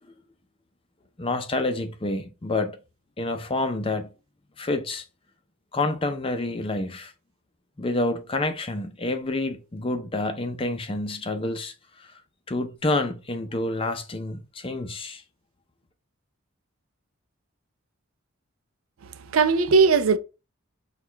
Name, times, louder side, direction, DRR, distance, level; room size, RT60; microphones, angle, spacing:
voice 1, 1.2-2.8 3.2-4.1 4.6-5.0 5.7-7.1 7.8-12.1 12.5-15.2, left 2 dB, 25° left, 0.5 m, -28 dB
voice 2, 19.1-20.2, right 5 dB, 75° right, 0.5 m, -19 dB
6.2 x 2.3 x 3.3 m
head